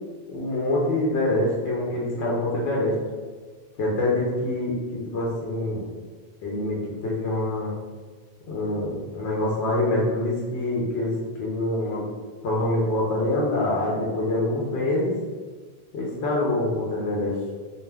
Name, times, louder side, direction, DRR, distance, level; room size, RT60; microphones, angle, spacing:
voice 1, 0.3-3.0 3.8-5.8 6.4-7.7 8.5-11.1 11.4-12.0 12.4-15.2 15.9-17.4, left 1 dB, 75° left, -4 dB, 0.9 m, -25 dB
2.4 x 2.2 x 3.2 m, 1.4 s
omnidirectional pair, 1.1 m